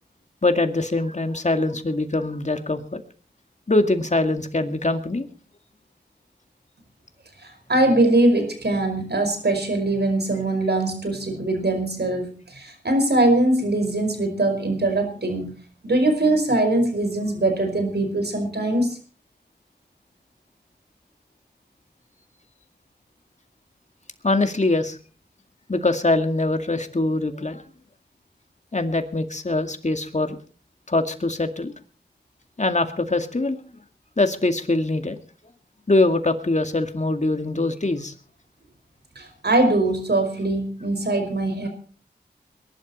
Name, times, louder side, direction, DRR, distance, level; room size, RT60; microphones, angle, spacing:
voice 1, 0.4-3.0 3.7-5.3 24.2-25.0 25.7-27.6 28.7-30.4 30.9-31.7 32.6-33.6 34.2-35.2 35.9-38.1, left 2 dB, 40° left, 7 dB, 2.2 m, -23 dB
voice 2, 7.4-15.5 15.8-19.0 39.1-41.7, right 2 dB, 70° right, 6 dB, 5.0 m, -22 dB
21.5 x 11.5 x 4.3 m, 0.40 s
cardioid pair, 40°, 18 cm